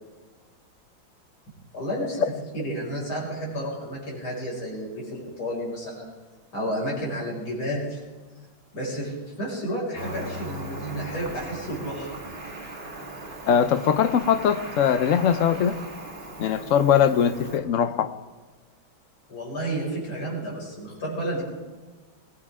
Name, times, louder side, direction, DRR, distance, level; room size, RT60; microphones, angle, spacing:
voice 1, 1.7-2.2 2.5-6.1 6.5-8.0 8.7-12.2 19.3-21.4, right 1 dB, 90° left, -4 dB, 6.6 m, -31 dB
Cricket, 10.0-17.6, right 1 dB, 30° right, 2.1 m, -38 dB
voice 2, 13.4-15.8 16.4-18.1, left 8 dB, 70° left, 11 dB, 0.7 m, -21 dB
20.5 x 17.5 x 3.7 m, 1.3 s
omnidirectional pair, 2.2 m